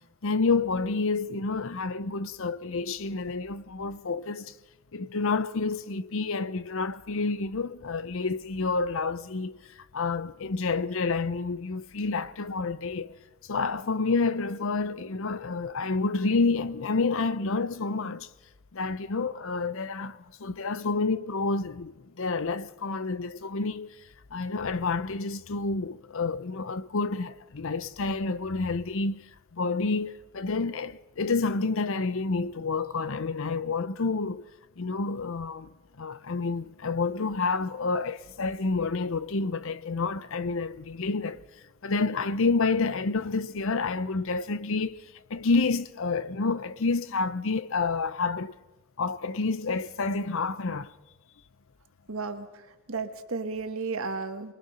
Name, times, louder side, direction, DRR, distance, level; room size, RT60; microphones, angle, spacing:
voice 1, 0.2-4.5 4.9-13.1 13.4-18.3 18.7-24.0 24.3-34.4 34.8-41.4 41.8-48.5 49.0-50.9, left 4 dB, 65° left, 0.7 m, -29 dB
voice 2, 52.1-54.5, right 4 dB, 70° right, 1.5 m, -34 dB
23.5 x 22.0 x 5.6 m
head